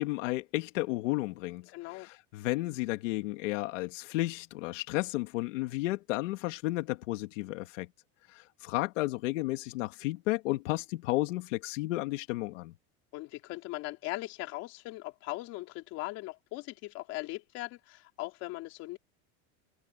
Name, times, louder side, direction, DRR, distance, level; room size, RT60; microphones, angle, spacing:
voice 1, 0.0-7.9 8.3-12.7, left 19 dB, 85° left, 1.8 m, -33 dB
voice 2, 1.7-2.1 13.1-19.0, left 20 dB, 45° left, 3.6 m, -39 dB
cardioid pair, 180°, 37 cm